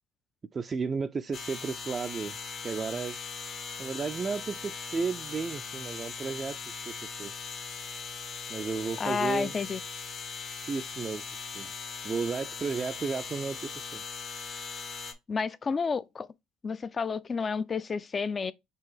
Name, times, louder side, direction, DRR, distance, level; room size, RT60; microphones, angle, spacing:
voice 1, 0.5-2.4 2.6-3.2 3.8-7.3 8.5-9.6 10.7-11.3 11.5-11.7 12.0-14.0, right 5 dB, 35° right, 0.3 m, -33 dB
sound 1, 1.3-15.1, left 5 dB, 55° left, 1.3 m, -40 dB
voice 2, 9.0-9.8 15.3-16.3 16.6-18.5, left 5 dB, 35° left, 0.4 m, -30 dB
4.5 x 3.4 x 3.3 m
supercardioid pair, 75°, 0 cm